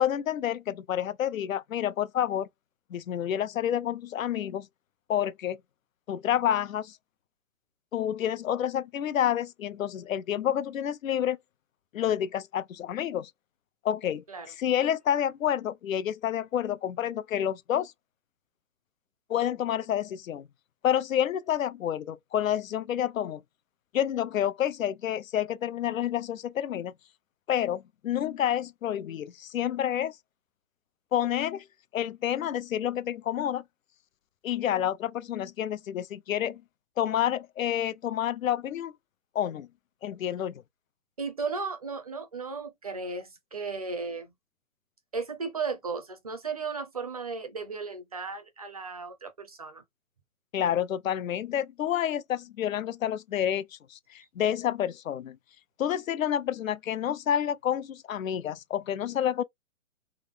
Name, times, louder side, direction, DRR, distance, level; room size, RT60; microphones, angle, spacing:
voice 1, 0.0-2.5 2.9-4.7 5.1-5.6 6.1-7.0 7.9-11.4 11.9-13.3 13.8-17.9 19.3-20.5 20.8-23.4 23.9-26.9 27.5-30.2 31.1-31.6 31.9-33.6 34.4-36.6 37.0-38.9 39.3-39.7 40.0-40.6 50.5-55.4 55.8-59.4, left 10 dB, 85° left, 0.6 m, -29 dB
voice 2, 41.2-44.3 45.1-49.8, right 4 dB, 30° right, 0.5 m, -35 dB
3.6 x 2.0 x 3.3 m
hypercardioid pair, 170°, 39 cm